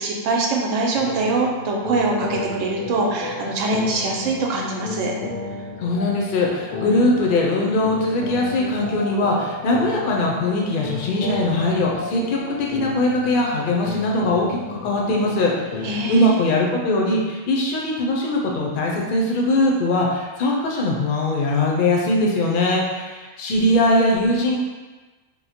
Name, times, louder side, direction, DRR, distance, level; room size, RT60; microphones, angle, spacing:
voice 1, 0.0-5.1 15.8-16.4, right 3 dB, 90° right, 0 dB, 1.0 m, -23 dB
sound 1, 1.0-16.2, left 3 dB, 85° left, 1.0 m, -33 dB
voice 2, 5.8-24.6, left 1 dB, 55° left, -1 dB, 0.6 m, -21 dB
3.0 x 2.0 x 4.1 m, 1.3 s
omnidirectional pair, 1.3 m